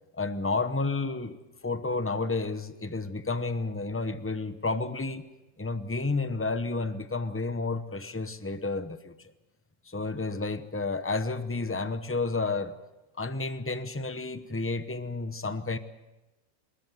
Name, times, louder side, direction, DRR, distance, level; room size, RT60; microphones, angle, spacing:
voice 1, 0.2-5.2 5.6-9.3 9.9-12.7 13.2-15.8, left 3 dB, 15° left, 11 dB, 0.4 m, -31 dB
27.5 x 14.0 x 9.2 m, 1.0 s
omnidirectional pair, 2.0 m